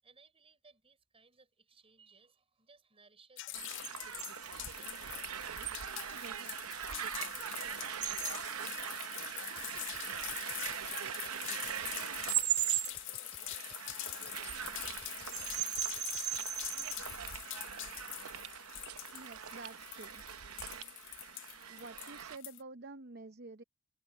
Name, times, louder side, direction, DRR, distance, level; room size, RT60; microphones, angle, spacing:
voice 1, 0.0-6.7 11.5-14.8, right 4 dB, 25° right, 5.7 m, -66 dB
sound 1, 3.4-22.6, left 18 dB, 60° left, 0.4 m, -44 dB
sound 2, 3.5-22.4, right 11 dB, 90° right, 0.8 m, -39 dB
sound 3, 9.6-16.4, left 4 dB, 25° left, 5.9 m, -57 dB
voice 2, 19.1-20.2 21.7-23.6, right 3 dB, 50° right, 0.7 m, -49 dB
head